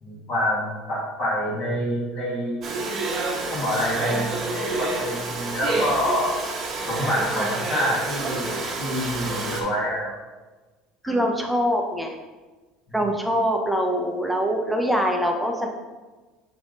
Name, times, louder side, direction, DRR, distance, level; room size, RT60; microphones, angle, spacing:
voice 1, 0.0-2.6 3.5-6.4 6.9-10.2, equal, 40° left, -5 dB, 1.8 m, -27 dB
Domestic sounds home sounds, 2.6-9.6, right 3 dB, 30° right, 1.2 m, -28 dB
voice 2, 11.0-12.2 12.9-15.7, equal, ahead, 2 dB, 0.6 m, -23 dB
7.2 x 3.4 x 3.9 m, 1.3 s
cardioid pair, 160°, 0 cm